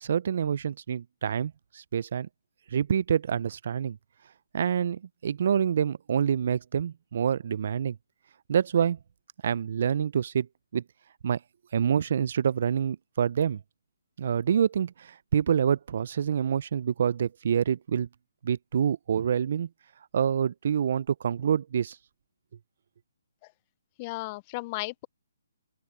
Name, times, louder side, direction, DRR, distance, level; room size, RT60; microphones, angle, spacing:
voice 1, 0.0-2.3 2.7-4.0 4.5-8.0 8.5-9.0 9.4-10.5 10.7-10.8 11.2-11.4 11.7-13.6 14.2-18.1 18.4-19.7 20.1-22.0, right 8 dB, 55° right, 0.5 m, -27 dB
voice 2, 24.0-25.1, left 23 dB, 30° left, 0.4 m, -35 dB
open air
figure-of-eight pair, 140°, 0 cm